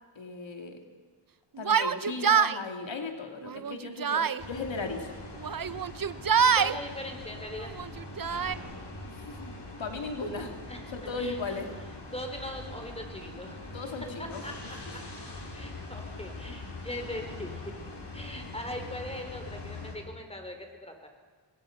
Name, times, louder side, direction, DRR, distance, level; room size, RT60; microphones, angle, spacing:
voice 1, 0.2-0.8 1.6-5.1 9.1-9.5 9.8-10.5 10.9-11.7 13.7-14.4, left 3 dB, 90° left, 4 dB, 2.7 m, -37 dB
Yell, 1.6-2.6 3.5-4.4 5.4-6.8 7.6-8.6, right 7 dB, 50° right, 0.8 m, -25 dB
sound 1, 4.4-19.9, left 2 dB, 65° left, 5.5 m, -42 dB
voice 2, 6.5-7.7 10.7-11.6 12.1-13.7 14.2-15.0 15.5-17.8 18.1-21.1, left 1 dB, 15° left, 4 dB, 4.7 m, -40 dB
27.5 x 21.5 x 5.9 m, 1.5 s
wide cardioid pair, 75°, 44 cm